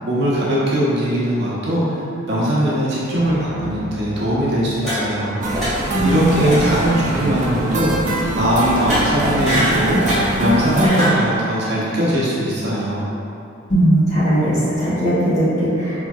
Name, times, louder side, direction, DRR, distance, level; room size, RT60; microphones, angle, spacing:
voice 1, 0.1-5.4 6.0-13.0, equal, 55° right, -7 dB, 0.7 m, -20 dB
sound 1, 3.1-7.0, left 1 dB, 85° left, 0.4 m, -34 dB
sound 2, 4.8-5.3 5.5-6.0 6.4-6.6 6.9-7.2 8.7-10.3 10.7-11.2, equal, ahead, 1.3 m, -23 dB
sound 3, 5.4-10.9, right 1 dB, 35° right, 0.3 m, -23 dB
voice 2, 5.9-6.6 13.7-16.1, right 1 dB, 35° left, -11 dB, 1.0 m, -18 dB
4.4 x 2.6 x 2.3 m, 2.7 s
head